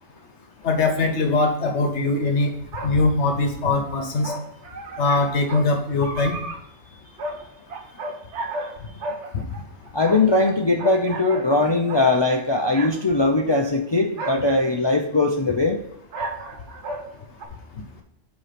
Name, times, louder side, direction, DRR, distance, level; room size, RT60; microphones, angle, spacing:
voice 1, 0.6-2.5 2.8-4.3 5.0-6.4, left 3 dB, 75° left, 4 dB, 1.1 m, -21 dB
sound 1, 0.6-0.7 2.7-2.9 4.2-5.7 6.0-6.6 7.2-7.4 7.7-8.7 9.0-10.5 10.8-11.5 11.9-12.1 12.7-12.9 13.5-13.6 14.2-14.5 16.1-17.1 17.4-17.5, right 2 dB, 75° right, 1.2 m, -32 dB
voice 2, 9.9-15.8, left 2 dB, 35° left, 2 dB, 0.4 m, -20 dB
8.2 x 3.0 x 5.7 m, 0.79 s
omnidirectional pair, 1.2 m